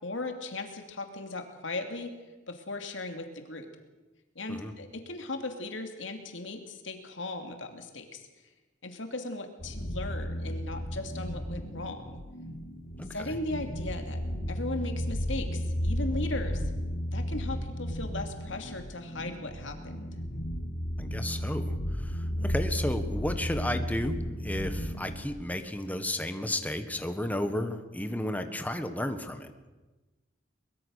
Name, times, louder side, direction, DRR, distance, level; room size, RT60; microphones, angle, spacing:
voice 1, 0.0-2.1 2.5-3.7 4.3-8.2 8.8-12.2 13.1-14.2 14.5-16.6 17.1-20.2, left 2 dB, 75° left, 5 dB, 2.7 m, -37 dB
sound 1, 9.6-25.3, equal, 50° left, 6.3 m, -34 dB
voice 2, 13.0-13.4 21.0-29.5, left 1 dB, 10° left, 7 dB, 1.5 m, -33 dB
23.0 x 21.5 x 6.6 m, 1.2 s
head